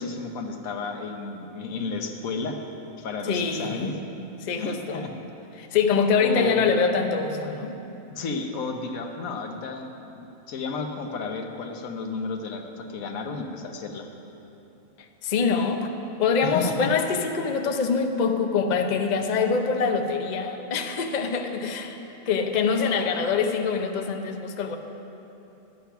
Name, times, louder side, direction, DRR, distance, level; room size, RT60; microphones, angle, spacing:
voice 1, 0.0-2.6 3.0-4.0 4.6-5.1 6.2-6.7 8.1-14.1 16.4-16.8, left 4 dB, 85° left, 4 dB, 1.3 m, -32 dB
voice 2, 3.3-4.0 4.4-5.0 5.6-7.8 15.2-15.9 16.2-24.8, left 5 dB, 45° left, 5 dB, 0.6 m, -24 dB
11.5 x 8.2 x 5.8 m, 2.9 s
omnidirectional pair, 1.4 m